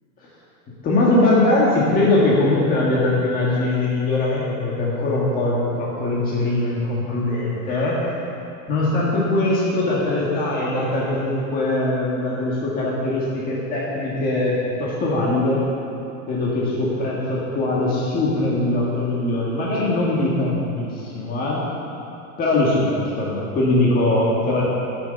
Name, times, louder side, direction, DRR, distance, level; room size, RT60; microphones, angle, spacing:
voice 1, 0.8-8.0 8.7-15.6 16.3-21.6 22.4-24.6, left 2 dB, 20° left, -6 dB, 1.7 m, -21 dB
12.0 x 6.8 x 6.7 m, 2.8 s
supercardioid pair, 165°, 43 cm